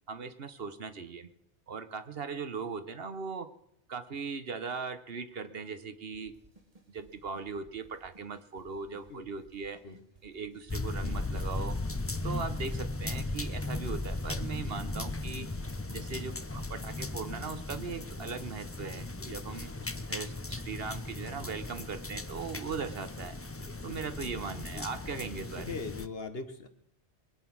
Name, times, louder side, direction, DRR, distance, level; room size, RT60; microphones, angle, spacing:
voice 1, 0.1-1.3 1.7-3.5 3.9-6.3 6.9-9.8 10.2-11.8 12.2-15.5 15.9-19.7 20.1-23.3 23.8-25.8, right 5 dB, 60° right, 11 dB, 1.2 m, -39 dB
sound 1, 6.1-24.8, right 3 dB, 35° right, 2.1 m, -60 dB
sound 2, 10.7-26.1, left 2 dB, 20° left, 0.4 m, -37 dB
voice 2, 25.6-26.7, left 4 dB, 60° left, 7 dB, 1.6 m, -40 dB
22.0 x 9.2 x 6.1 m, 0.70 s
omnidirectional pair, 1.2 m